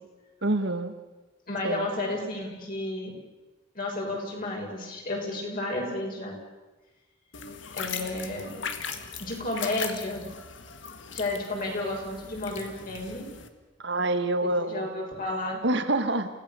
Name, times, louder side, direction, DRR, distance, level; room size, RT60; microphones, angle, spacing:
voice 1, 0.4-0.9 1.6-1.9 13.8-14.9 15.6-16.3, right 2 dB, 65° right, 9 dB, 1.8 m, -26 dB
voice 2, 1.5-3.1 3.7-6.4 7.7-8.5 9.2-10.3 11.1-13.2 14.7-15.6, left 2 dB, 50° left, -1 dB, 6.7 m, -32 dB
sound 1, 7.3-13.5, left 6 dB, 70° left, 2.0 m, -39 dB
29.5 x 16.5 x 7.0 m, 1.2 s
head